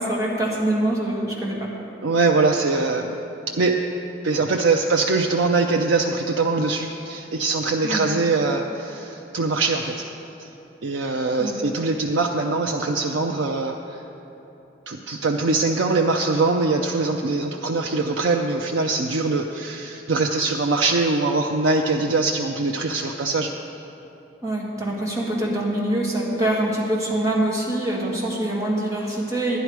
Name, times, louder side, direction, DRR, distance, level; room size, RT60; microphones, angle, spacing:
voice 1, 0.0-1.7 7.8-8.1 11.4-11.6 24.4-29.6, right 1 dB, 15° right, -5 dB, 1.8 m, -24 dB
voice 2, 2.0-3.2 3.5-3.8 4.2-10.0 10.4-10.5 10.8-14.0 14.9-23.5, right 3 dB, 90° right, 1 dB, 0.5 m, -22 dB
11.0 x 10.5 x 4.7 m, 2.9 s
head